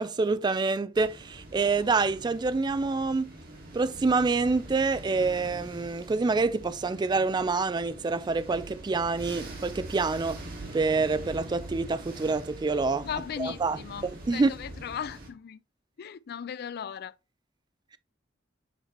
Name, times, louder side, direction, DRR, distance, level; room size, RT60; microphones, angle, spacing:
voice 1, 0.0-3.3 3.7-10.4 10.7-13.1 13.4-13.8 14.0-14.5, right 4 dB, 20° right, 0.3 m, -27 dB
sound 1, 0.9-15.3, right 1 dB, 50° right, 1.9 m, -44 dB
voice 2, 13.0-15.6 16.0-17.1, left 8 dB, 55° left, 0.4 m, -37 dB
8.0 x 4.4 x 3.1 m
head